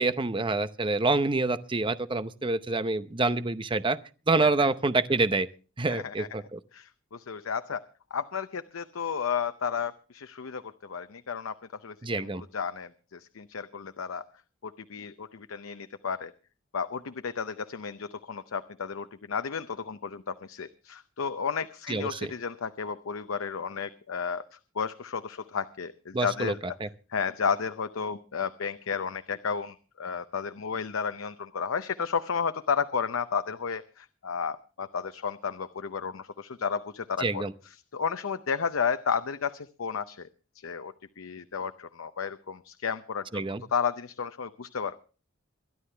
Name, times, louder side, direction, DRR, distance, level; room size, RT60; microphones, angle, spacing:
voice 1, 0.0-4.0 4.3-5.5 5.8-6.6 12.0-12.4 21.9-22.3 26.1-26.5 26.8-26.9 37.2-37.5 43.3-43.6, right 3 dB, 25° right, 0.7 m, -27 dB
voice 2, 5.9-6.3 6.7-7.8 8.1-14.2 14.6-16.3 16.7-26.8 27.1-37.4 37.9-40.3 40.5-43.4 43.7-45.2, left 6 dB, 85° left, 0.7 m, -33 dB
23.0 x 11.0 x 3.3 m
head